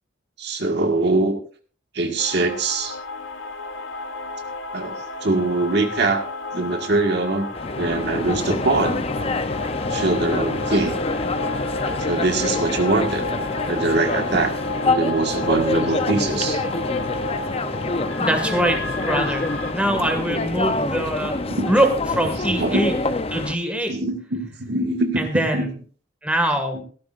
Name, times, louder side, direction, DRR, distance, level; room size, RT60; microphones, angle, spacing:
voice 1, 0.4-1.4 1.9-2.9 4.7-6.2 6.5-7.5 7.8-9.1 9.9-11.1 12.0-13.3 13.7-14.5 14.8-16.6 21.4-21.7 22.6-22.9 23.9-25.7 26.7-26.8, right 2 dB, 55° right, 4 dB, 1.7 m, -23 dB
sound 1, 2.2-19.7, left 2 dB, 80° left, 1.6 m, -32 dB
sound 2, 7.5-23.6, left 3 dB, 30° left, 0.7 m, -26 dB
voice 2, 18.2-19.4 19.7-21.4 21.7-22.9 23.3-23.9 25.2-25.7 26.2-26.8, right 1 dB, 5° right, 4 dB, 1.9 m, -22 dB
16.5 x 13.5 x 2.5 m, 0.42 s
head